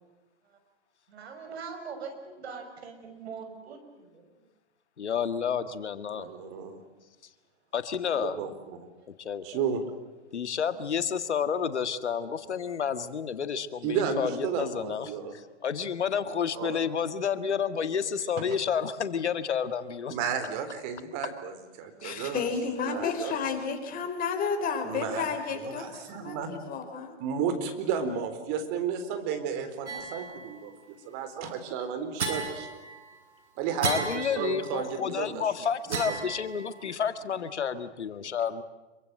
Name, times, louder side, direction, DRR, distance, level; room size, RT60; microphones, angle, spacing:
voice 1, 1.1-3.8 9.0-9.1, right 5 dB, 65° right, 6 dB, 6.6 m, -41 dB
voice 2, 5.0-6.3 7.7-8.4 9.2-9.6 10.3-20.2 22.0-22.3 23.0-23.1 33.8-38.6, left 7 dB, 80° left, 11 dB, 1.8 m, -30 dB
voice 3, 6.1-6.8 8.2-8.9 9.4-9.8 13.8-15.3 16.5-16.8 20.1-22.4 22.9-23.3 24.8-25.3 25.5-26.5 27.2-30.7 31.0-32.9 33.6-34.9 35.2-35.4 35.9-36.2, right 7 dB, 40° right, 8 dB, 4.2 m, -33 dB
voice 4, 22.0-27.2, left 5 dB, 25° left, 6 dB, 4.1 m, -32 dB
sound 1, 29.9-30.6 32.2-33.3 33.8-34.9 35.9-36.9, right 4 dB, 85° right, 5.7 m, -34 dB
26.5 x 24.0 x 7.8 m, 1.1 s
hypercardioid pair, 125°, 34 cm